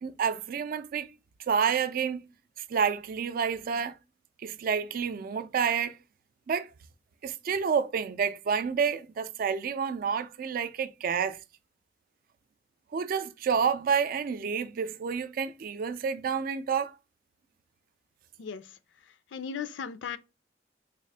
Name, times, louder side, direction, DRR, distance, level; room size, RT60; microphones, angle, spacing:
voice 1, 0.0-1.1 1.5-2.3 2.6-4.0 4.4-6.0 6.5-6.7 7.2-11.4 12.9-17.0, right 6 dB, 55° right, 0.3 m, -29 dB
voice 2, 19.3-20.2, left 6 dB, 85° left, 0.4 m, -36 dB
3.6 x 2.4 x 3.3 m
head